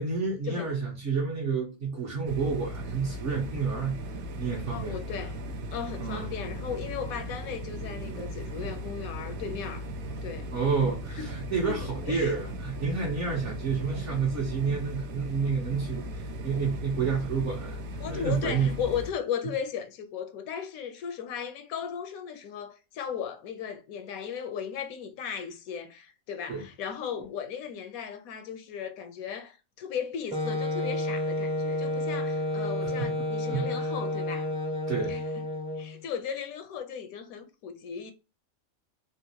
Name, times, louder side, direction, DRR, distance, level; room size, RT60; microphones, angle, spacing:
voice 1, 0.0-4.0 4.4-5.0 6.0-6.3 10.5-17.8 18.1-18.8 26.5-26.6 32.8-32.9 33.5-33.9 34.9-35.1, right 5 dB, 60° right, 1.2 m, -29 dB
sound 1, 2.3-19.1, equal, 85° right, 1.1 m, -37 dB
voice 2, 4.7-5.4 5.7-9.9 10.2-10.5 11.2-11.3 11.6-12.3 18.0-34.5 35.1-35.2 35.8-38.1, left 7 dB, 85° left, 1.1 m, -36 dB
Wind instrument woodwind instrument, 30.3-36.0, left 1 dB, 10° right, 0.4 m, -30 dB
3.7 x 2.4 x 2.7 m
omnidirectional pair, 1.5 m